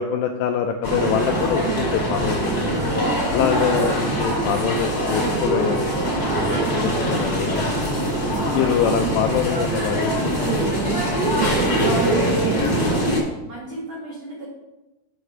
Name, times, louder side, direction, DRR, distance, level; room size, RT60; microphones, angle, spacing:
voice 1, 0.0-2.7 3.3-5.9 6.2-7.9 8.5-11.6 12.3-12.7, left 8 dB, 90° left, 4 dB, 2.4 m, -25 dB
sound 1, 0.8-13.2, right 1 dB, 30° left, 1.7 m, -22 dB
voice 2, 2.7-3.4 11.6-14.5, right 1 dB, 75° right, -7 dB, 1.5 m, -36 dB
7.9 x 4.9 x 5.6 m, 1.0 s
omnidirectional pair, 5.5 m